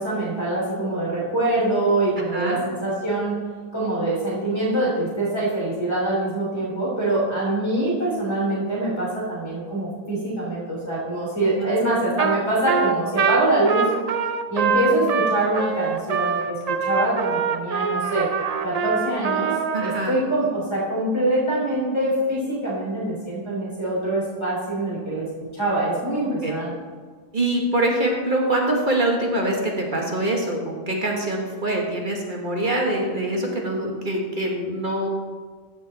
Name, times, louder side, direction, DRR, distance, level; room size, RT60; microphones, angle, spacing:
voice 1, 0.0-3.4 3.7-13.9 14.5-16.5 16.8-18.3 18.6-25.3 25.5-26.7, right 1 dB, 20° left, -6 dB, 3.4 m, -24 dB
Trumpet, 12.2-12.4 12.7-20.0, right 6 dB, 55° right, 0.4 m, -24 dB
voice 2, 19.7-20.1 26.4-26.5 27.3-35.1, right 1 dB, 40° right, 0 dB, 1.5 m, -24 dB
15.0 x 5.6 x 4.1 m, 1.5 s
omnidirectional pair, 1.3 m